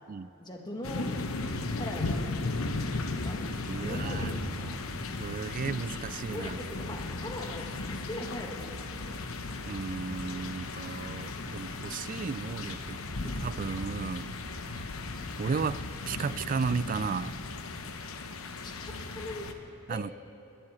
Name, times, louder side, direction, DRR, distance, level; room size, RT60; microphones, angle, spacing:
voice 1, 0.4-1.0 1.7-2.4 3.1-4.7 6.3-9.0 18.6-19.5 19.9-20.0, left 1 dB, 20° left, 1 dB, 1.6 m, -41 dB
sound 1, 0.8-19.5, left 3 dB, 85° left, 1.0 m, -36 dB
voice 2, 3.6-4.8 5.2-6.6 9.7-13.0 13.2-14.3 14.8-14.9 15.4-15.8 16.1-17.5 19.9-20.1, right 5 dB, 40° right, 17 dB, 0.3 m, -34 dB
21.0 x 7.7 x 8.3 m, 3.0 s
head